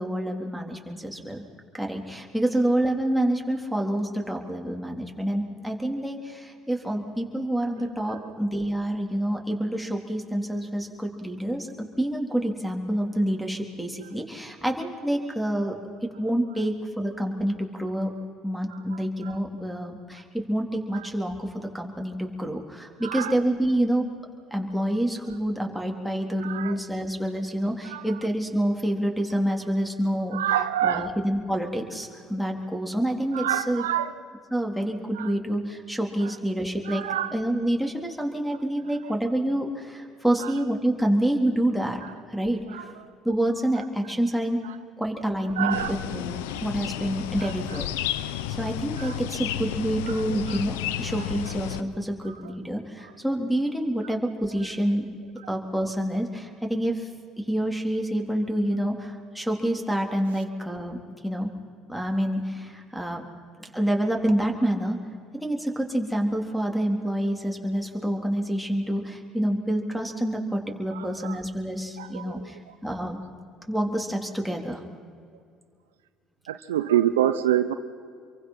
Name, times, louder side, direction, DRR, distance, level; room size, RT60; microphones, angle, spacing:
voice 1, 0.0-1.4 1.7-18.1 18.4-24.1 24.5-30.4 30.8-33.8 34.5-37.0 37.3-42.0 42.3-42.9 43.2-44.6 45.0-47.9 48.5-55.1 55.5-57.1 57.4-61.5 61.9-63.2 63.6-65.0 65.4-73.2 73.7-74.8, right 1 dB, ahead, 3 dB, 3.6 m, -27 dB
voice 2, 7.8-8.3 18.7-19.3 20.9-21.1 23.0-23.4 26.4-26.8 27.8-28.2 30.3-31.1 33.3-34.1 35.1-35.3 36.2-36.4 36.8-37.4 39.0-39.1 40.4-40.5 42.0-42.1 42.7-42.9 44.6-44.8 45.5-46.2 46.5-46.6 47.4-47.9 49.0-49.2 50.1-50.6 51.2-51.3 52.2-52.5 53.0-53.1 54.0-54.1 55.4-55.5 70.9-71.4 72.0-72.7 76.5-77.7, right 11 dB, 90° right, 11 dB, 0.8 m, -29 dB
sound 1, 45.7-51.8, left 12 dB, 80° left, 0.8 m, -32 dB
27.0 x 23.5 x 5.8 m, 2.2 s
hypercardioid pair, 65°, 0 cm